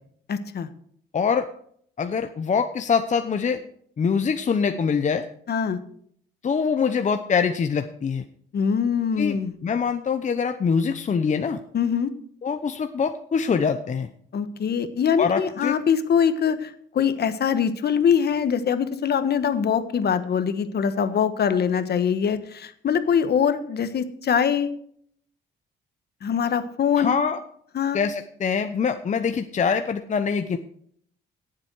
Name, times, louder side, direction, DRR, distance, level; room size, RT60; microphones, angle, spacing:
voice 1, 0.3-0.7 5.5-5.8 8.5-9.5 11.7-12.1 14.3-24.7 26.2-27.2 27.7-28.0, left 7 dB, 55° left, 11 dB, 1.3 m, -23 dB
voice 2, 1.1-1.5 2.0-3.6 4.0-5.2 6.4-8.2 9.2-11.6 12.4-14.1 15.2-15.7 27.0-27.4 27.9-30.6, left 6 dB, 40° left, 8 dB, 0.8 m, -24 dB
17.5 x 7.5 x 4.7 m, 0.64 s
cardioid pair, 90°, 20 cm